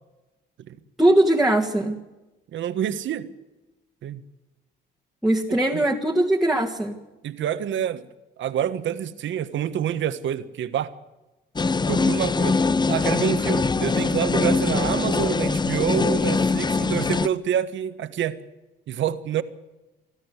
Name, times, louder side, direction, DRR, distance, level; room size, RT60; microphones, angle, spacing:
voice 1, 1.0-2.0 5.2-7.0, right 1 dB, ahead, -2 dB, 1.8 m, -20 dB
voice 2, 2.5-3.3 4.0-4.2 5.7-5.8 7.2-8.1 8.4-10.9 11.9-12.6 12.9-18.4 18.9-19.4, right 10 dB, 70° right, 12 dB, 1.4 m, -27 dB
sound 1, 11.6-17.3, left 4 dB, 20° left, 0.7 m, -22 dB
25.0 x 13.0 x 8.1 m, 1.1 s
cardioid pair, 90°, 20 cm